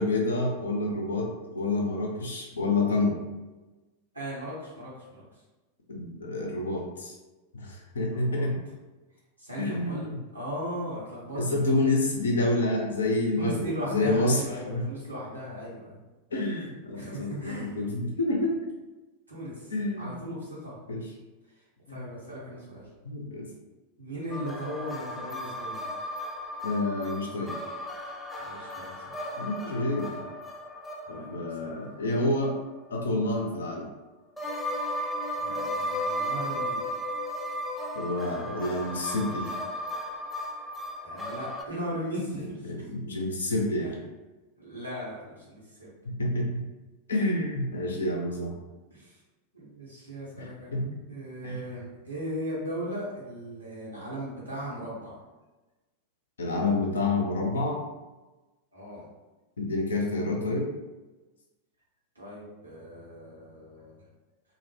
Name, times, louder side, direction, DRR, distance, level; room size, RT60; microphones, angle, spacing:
voice 1, 0.0-3.2 5.9-7.1 7.5-8.6 9.6-10.2 11.3-14.8 16.3-18.6 19.7-20.1 20.9-21.0 21.9-22.0 23.0-23.5 26.6-27.6 29.4-30.2 31.1-32.5 32.9-33.9 38.0-39.5 42.7-43.9 46.0-46.6 47.1-48.5 50.4-51.0 51.4-51.6 56.4-57.8 59.6-60.7, left 2 dB, 70° left, 0 dB, 0.5 m, -28 dB
voice 2, 4.1-5.2 8.1-8.5 9.4-10.1 10.3-11.4 13.4-16.0 16.9-17.8 19.3-20.8 21.9-22.9 24.0-25.8 28.3-29.2 31.0-31.8 35.4-36.9 41.0-42.9 44.6-45.9 48.9-49.2 49.5-55.2 58.7-59.0 62.1-64.0, equal, 80° right, -7 dB, 1.0 m, -38 dB
sound 1, 24.3-32.9 34.4-41.6, equal, 5° left, 0.3 m, -35 dB
2.4 x 2.0 x 3.2 m, 1.1 s
figure-of-eight pair, 90°, 0 cm